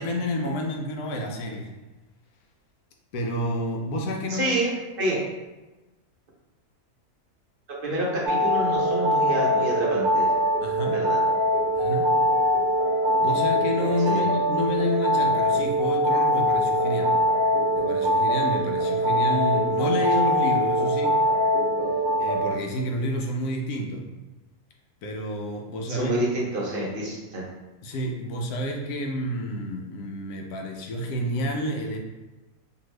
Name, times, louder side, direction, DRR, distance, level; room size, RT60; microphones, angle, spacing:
voice 1, 0.0-1.7 3.1-4.5 10.6-11.0 11.7-12.1 13.2-17.1 17.8-21.2 22.2-24.0 25.0-26.1 27.8-32.0, left 1 dB, 80° left, 2 dB, 1.1 m, -29 dB
voice 2, 4.3-5.2 7.8-10.3 10.8-11.2 14.1-14.3 25.9-27.4, right 1 dB, 50° right, -4 dB, 0.7 m, -28 dB
sound 1, 8.3-22.5, equal, 90° right, 1.2 m, -23 dB
2.8 x 2.6 x 3.1 m, 1.1 s
omnidirectional pair, 1.6 m